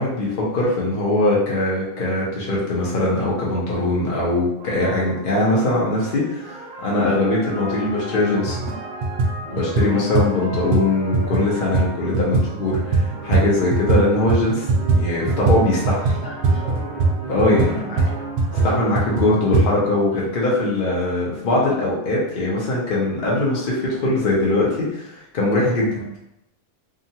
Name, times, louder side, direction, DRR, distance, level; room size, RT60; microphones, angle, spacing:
voice 1, 0.0-8.6 9.5-14.7 14.9-16.0 17.3-17.7 18.6-25.9, left 2 dB, 45° left, -4 dB, 0.8 m, -21 dB
sound 1, 4.6-19.5, right 2 dB, 55° right, 0.5 m, -35 dB
sound 2, 7.9-8.0 8.4-8.8 9.0-14.0 14.3-19.7, right 3 dB, 75° right, 1.0 m, -21 dB
voice 2, 16.1-16.8 17.3-18.2 25.9-26.1, left 1 dB, 70° left, -4 dB, 1.1 m, -35 dB
2.9 x 2.4 x 2.7 m, 0.85 s
omnidirectional pair, 1.5 m